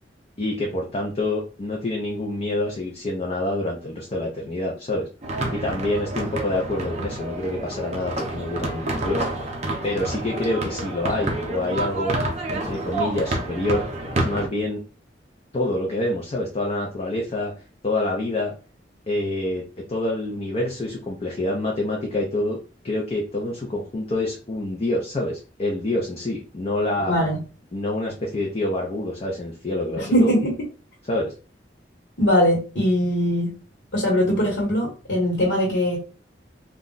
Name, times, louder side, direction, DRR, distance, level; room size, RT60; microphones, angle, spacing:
voice 1, 0.4-5.1 5.5-9.3 9.8-12.1 12.5-13.8 14.2-14.8 15.5-17.5 17.8-18.5 19.1-19.6 19.9-22.6 22.8-27.1 27.7-30.4 31.0-31.3, left 1 dB, 35° left, -1 dB, 0.5 m, -27 dB
sound 1, 5.2-14.5, right 2 dB, 40° right, 0.6 m, -28 dB
voice 2, 27.1-27.4 30.0-30.5 32.2-33.5 33.9-36.0, equal, 75° left, -3 dB, 1.1 m, -21 dB
2.4 x 2.1 x 3.8 m, 0.35 s
head